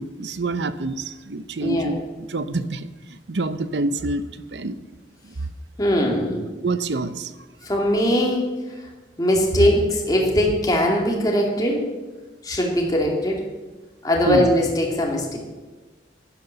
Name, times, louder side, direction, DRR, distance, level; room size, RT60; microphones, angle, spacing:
voice 1, 0.0-2.0 2.3-2.9 3.3-4.2 4.5-4.8 5.3-5.4 6.6-7.3 14.3-14.5, right 2 dB, 75° right, 13 dB, 0.7 m, -26 dB
voice 2, 1.6-1.9 5.8-6.5 7.6-8.4 9.2-11.9 12.4-13.4 14.0-15.4, equal, 20° left, -1 dB, 2.4 m, -21 dB
11.5 x 10.5 x 6.9 m, 1.2 s
head